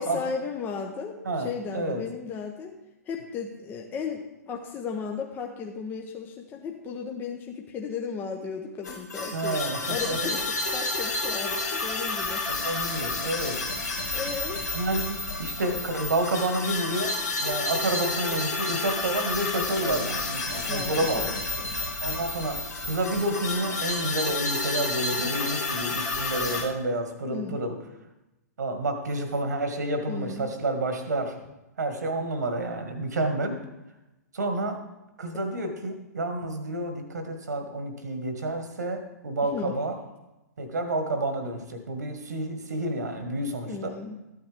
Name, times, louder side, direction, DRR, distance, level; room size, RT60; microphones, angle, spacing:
voice 1, 0.0-2.8 3.1-12.4 14.1-14.6 20.7-21.8 27.2-27.6 30.1-30.5 39.5-39.7 43.6-44.2, left 5 dB, 20° left, 1 dB, 1.0 m, -35 dB
sound 1, 8.8-26.6, left 2 dB, 80° left, 2.4 m, -30 dB
voice 2, 9.3-9.8 10.0-10.2 12.5-13.6 14.7-21.3 22.0-27.8 28.6-31.4 31.8-33.6 34.3-34.8 35.2-40.0 40.6-43.9, right 1 dB, 75° right, 6 dB, 1.8 m, -29 dB
13.5 x 9.1 x 3.5 m, 0.97 s
figure-of-eight pair, 120°, 9 cm